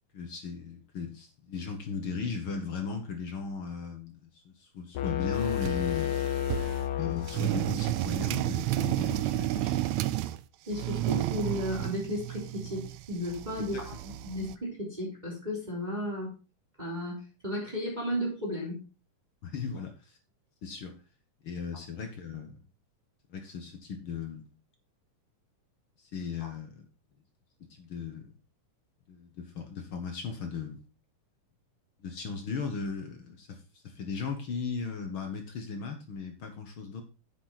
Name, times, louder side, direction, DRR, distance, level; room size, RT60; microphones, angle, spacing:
voice 1, 0.1-6.2 6.9-9.9 13.7-13.8 19.4-20.2 20.6-21.0 21.4-22.6 23.3-24.5 26.0-26.8 27.6-28.3 29.1-30.8 32.0-37.0, left 5 dB, 50° left, 5 dB, 1.7 m, -37 dB
sound 1, 4.9-7.9, left 11 dB, 85° left, 1.3 m, -31 dB
sound 2, 5.4-6.9 7.3-10.4 10.7-14.6, right 16 dB, 80° right, 1.6 m, -32 dB
voice 2, 10.7-12.8 13.1-16.3 16.8-18.8 26.4-26.5, equal, 15° right, -3 dB, 3.2 m, -34 dB
9.3 x 7.8 x 4.0 m, 0.32 s
omnidirectional pair, 3.7 m